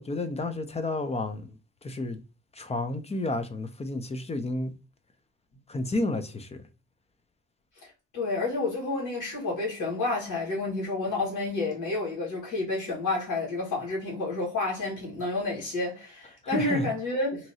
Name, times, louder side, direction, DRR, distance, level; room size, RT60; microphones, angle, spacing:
voice 1, 0.0-1.5 1.8-2.2 2.6-4.7 5.7-6.6 16.4-16.9, left 2 dB, 20° left, 0.5 m, -31 dB
voice 2, 8.1-17.5, left 2 dB, 80° left, 1.6 m, -30 dB
2.9 x 2.7 x 2.7 m
cardioid pair, 90°, 30 cm